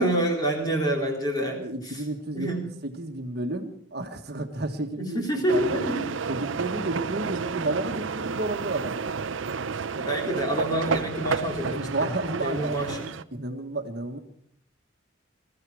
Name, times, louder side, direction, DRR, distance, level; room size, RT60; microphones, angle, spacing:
voice 1, 0.0-2.0 2.3-2.7 5.0-6.1 9.9-11.9 12.4-13.0, right 1 dB, 20° left, 1 dB, 3.6 m, -27 dB
voice 2, 1.6-5.2 5.5-5.8 6.3-9.3 11.7-13.0 13.3-14.2, right 2 dB, 55° right, 4 dB, 1.5 m, -32 dB
sound 1, 5.5-13.2, right 5 dB, 80° right, 0.6 m, -31 dB
22.0 x 14.0 x 4.8 m, 0.63 s
head